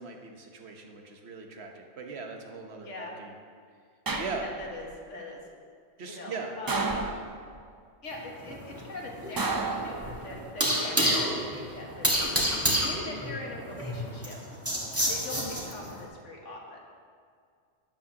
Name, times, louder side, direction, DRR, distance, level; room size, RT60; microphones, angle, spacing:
voice 1, 0.0-3.3 4.2-4.5 6.0-6.5, right 4 dB, 60° right, 3 dB, 1.2 m, -39 dB
sound 1, 4.1-4.8 6.7-7.6 9.4-10.5 11.9-12.4, right 3 dB, 35° right, 0.3 m, -32 dB
voice 2, 4.3-5.4 6.0-7.0 8.0-11.2 11.5-12.4 12.8-14.4 15.1-16.8, left 2 dB, 80° left, -1 dB, 1.8 m, -41 dB
sound 2, 8.1-16.0, equal, 10° right, 1.5 m, -29 dB
12.0 x 9.5 x 2.8 m, 2.1 s
omnidirectional pair, 1.2 m